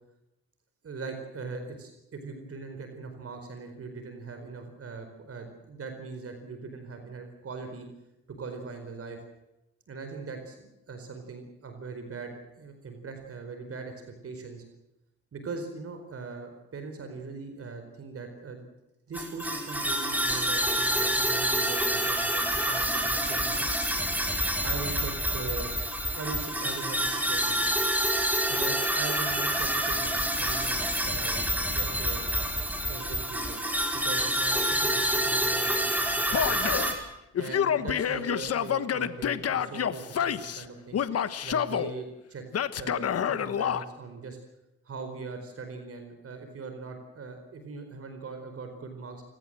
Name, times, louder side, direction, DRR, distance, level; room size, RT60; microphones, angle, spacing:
voice 1, 0.8-7.9 8.4-9.2 9.9-14.6 15.3-18.7 19.1-23.8 24.6-25.7 26.1-27.7 28.5-30.8 31.0-32.3 32.8-33.6 33.9-36.9 37.4-41.1 41.4-42.4 42.8-44.4 44.8-49.2, right 4 dB, 50° right, 6 dB, 4.5 m, -40 dB
sound 1, 19.1-36.9, equal, 5° right, 5.1 m, -27 dB
Male speech man speaking / Yell, 36.3-36.9 37.4-40.6 40.9-41.9 42.5-43.8, left 8 dB, 55° left, 1.3 m, -28 dB
28.5 x 17.0 x 7.7 m, 0.93 s
cardioid pair, 90°, 30 cm